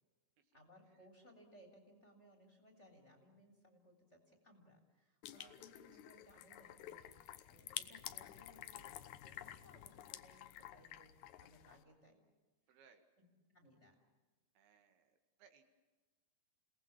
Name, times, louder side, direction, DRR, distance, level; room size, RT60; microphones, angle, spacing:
voice 1, 0.5-11.1 11.4-12.2 13.2-13.3 13.5-14.0, equal, 20° left, 4 dB, 3.4 m, -64 dB
sound 1, 5.2-11.8, left 12 dB, 75° left, 1.8 m, -51 dB
voice 2, 5.4-6.0 7.6-7.7 10.5-10.6 12.7-13.1 14.6-15.6, right 6 dB, 75° right, 6 dB, 3.9 m, -68 dB
29.0 x 18.5 x 7.3 m, 1.2 s
omnidirectional pair, 4.5 m